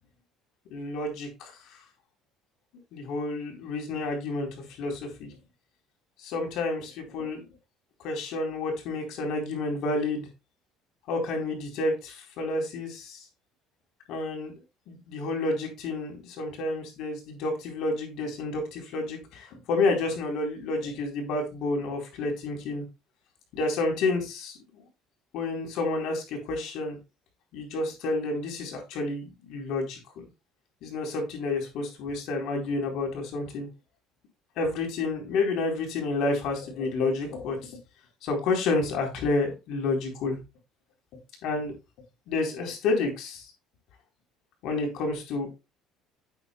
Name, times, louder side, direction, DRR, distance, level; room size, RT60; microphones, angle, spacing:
voice 1, 0.7-1.5 2.9-4.5 4.8-5.3 6.2-7.4 8.0-10.3 11.1-13.2 14.1-14.5 14.9-22.8 23.5-24.6 25.3-27.0 27.5-30.0 30.8-33.7 34.6-37.7 38.2-40.4 41.4-41.7 42.3-43.4 44.6-45.5, left 3 dB, 65° left, 2 dB, 4.4 m, -30 dB
10.0 x 8.4 x 2.4 m, 0.25 s
cardioid pair, 135°, 0 cm